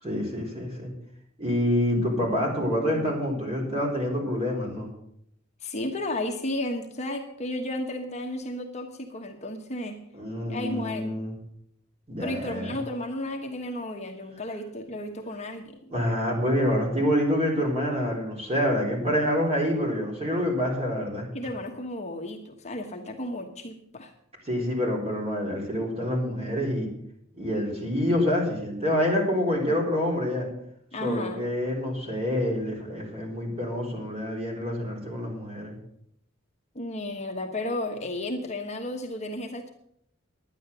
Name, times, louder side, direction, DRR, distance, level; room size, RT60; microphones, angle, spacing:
voice 1, 0.0-0.9 1.4-4.9 10.2-11.3 12.1-12.8 15.9-21.3 24.5-26.9 27.4-30.5 31.0-35.8, equal, 30° right, -1 dB, 4.0 m, -27 dB
voice 2, 5.6-10.0 10.5-11.2 12.2-15.9 21.3-24.1 30.9-31.5 36.7-39.7, left 1 dB, 35° left, 3 dB, 1.2 m, -33 dB
11.0 x 10.0 x 6.8 m, 0.71 s
head